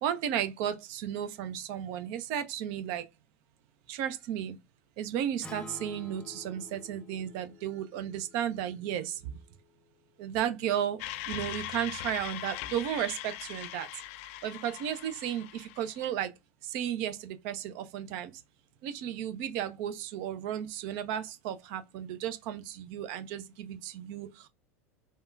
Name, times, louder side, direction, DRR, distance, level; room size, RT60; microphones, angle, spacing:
voice 1, 0.0-3.0 3.9-4.6 5.0-9.3 10.2-11.0 11.3-13.9 14.4-16.3 16.6-18.3 18.8-24.5, right 10 dB, 55° right, 0.5 m, -34 dB
Acoustic guitar, 5.4-9.7, left 3 dB, 10° left, 0.5 m, -50 dB
sound 1, 11.0-16.1, left 14 dB, 60° left, 0.3 m, -41 dB
3.5 x 2.2 x 2.6 m
hypercardioid pair, 85°, 8 cm